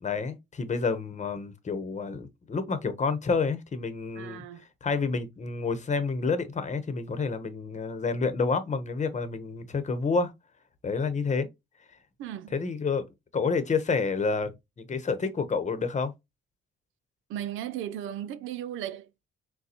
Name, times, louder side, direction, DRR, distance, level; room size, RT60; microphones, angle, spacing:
voice 1, 0.0-4.4 4.8-10.3 10.8-11.5 12.5-13.0 13.3-16.1, left 4 dB, 35° left, 0.9 m, -29 dB
voice 2, 4.2-4.7 12.2-12.5 17.3-19.3, right 11 dB, 90° right, 0.5 m, -36 dB
6.5 x 2.3 x 2.9 m
cardioid pair, 90°, 20 cm